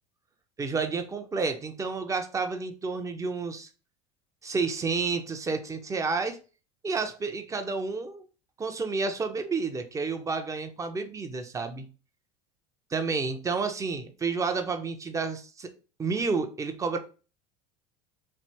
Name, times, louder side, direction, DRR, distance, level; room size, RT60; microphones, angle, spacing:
voice 1, 0.6-3.7 4.4-6.4 6.8-8.3 8.6-11.9 12.9-15.7 16.0-17.0, right 4 dB, 20° right, 0.5 m, -30 dB
3.2 x 2.5 x 2.7 m
supercardioid pair, 95°, 15 cm